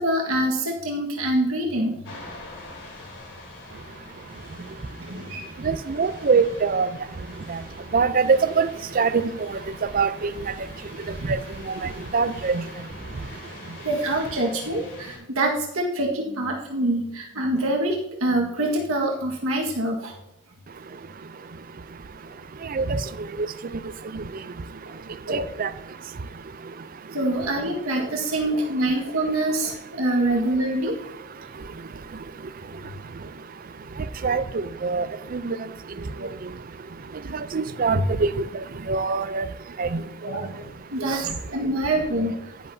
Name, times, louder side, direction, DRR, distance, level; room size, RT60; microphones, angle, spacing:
voice 1, 0.0-2.0 4.6-4.7 5.1-5.4 13.8-20.1 25.3-25.5 27.1-31.0 32.9-33.0 36.0-36.3 37.2-37.3 37.9-38.0 39.8-39.9 40.2-42.4, right 1 dB, 85° right, -1 dB, 1.6 m, -25 dB
sound 1, 2.0-15.2, left 2 dB, 60° left, 4.0 m, -43 dB
voice 2, 5.6-6.9 7.5-7.6 7.9-8.7 9.0-9.5 9.9-10.3 11.3-11.4 12.1-12.6 22.7-23.0 24.1-24.2 25.3-25.7 34.2-35.1 35.3-35.6 37.3-38.5 38.9-39.5 39.8-40.0, right 5 dB, 40° right, 14 dB, 0.5 m, -23 dB
10.5 x 10.5 x 2.7 m, 0.88 s
head